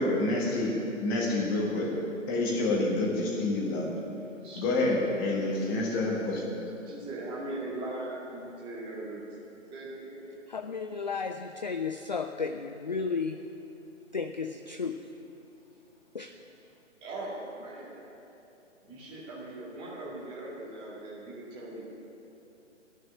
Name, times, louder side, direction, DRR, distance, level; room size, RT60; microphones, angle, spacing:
voice 1, 0.0-1.9 2.3-3.9 4.5-6.4, left 2 dB, 20° left, -2 dB, 1.5 m, -28 dB
voice 2, 4.4-5.0 6.8-9.2 9.7-10.3 17.0-18.2 18.8-21.9, right 2 dB, 15° right, -5 dB, 2.1 m, -40 dB
voice 3, 10.5-13.4 14.1-15.0 16.1-16.3, left 5 dB, 40° left, 7 dB, 0.4 m, -33 dB
12.5 x 6.7 x 9.9 m, 3.0 s
figure-of-eight pair, 140°, 38 cm